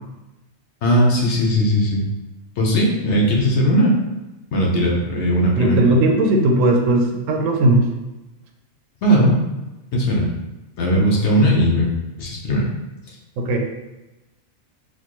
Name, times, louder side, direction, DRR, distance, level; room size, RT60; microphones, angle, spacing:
voice 1, 0.8-2.0 2.6-3.9 4.5-5.8 9.0-9.4 9.9-10.3 10.8-11.9 12.2-12.7, equal, 65° left, -2 dB, 1.0 m, -18 dB
voice 2, 5.5-7.9 13.4-13.7, right 2 dB, 80° right, 2 dB, 1.0 m, -17 dB
4.4 x 2.2 x 3.0 m, 1.0 s
omnidirectional pair, 1.3 m